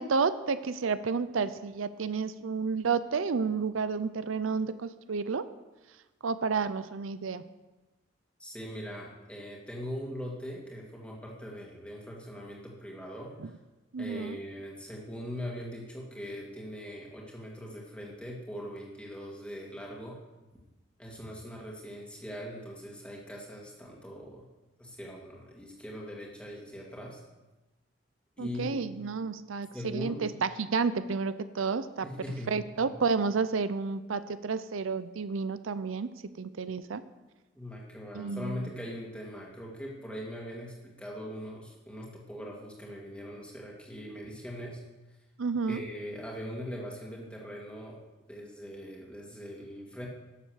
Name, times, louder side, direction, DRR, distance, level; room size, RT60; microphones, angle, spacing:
voice 1, 0.0-5.4 6.2-7.4 13.9-14.4 28.4-32.1 32.5-36.1 36.4-37.0 38.1-38.7 45.4-45.8, right 5 dB, 85° right, 13 dB, 0.5 m, -31 dB
voice 2, 8.4-13.5 14.0-20.2 21.0-24.5 24.8-27.2 28.4-28.8 29.7-30.3 32.0-32.9 37.5-44.8 45.7-48.0 48.3-50.1, equal, 5° left, -2 dB, 2.1 m, -41 dB
12.0 x 7.5 x 6.5 m, 1.1 s
head